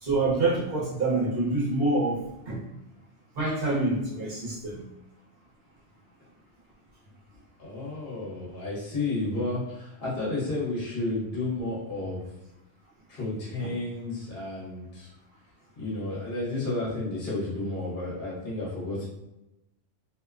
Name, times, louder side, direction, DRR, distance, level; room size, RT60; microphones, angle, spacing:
voice 1, 0.0-2.6 3.4-4.8 13.6-13.7, right 2 dB, 60° right, -5 dB, 1.0 m, -26 dB
voice 2, 7.6-12.3 13.1-15.1 15.8-19.0, left 2 dB, 50° left, -6 dB, 1.1 m, -32 dB
2.6 x 2.1 x 2.3 m, 0.91 s
omnidirectional pair, 1.1 m